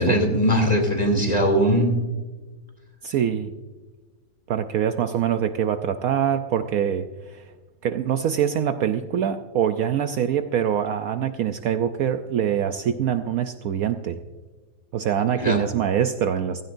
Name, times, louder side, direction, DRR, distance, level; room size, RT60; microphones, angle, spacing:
voice 1, 0.0-2.0 15.4-15.6, equal, 25° left, 2 dB, 2.6 m, -20 dB
voice 2, 3.0-3.5 4.5-7.5 7.8-14.2 14.9-16.6, right 9 dB, 70° right, 9 dB, 1.0 m, -24 dB
16.0 x 16.0 x 2.6 m, 1.3 s
omnidirectional pair, 1.7 m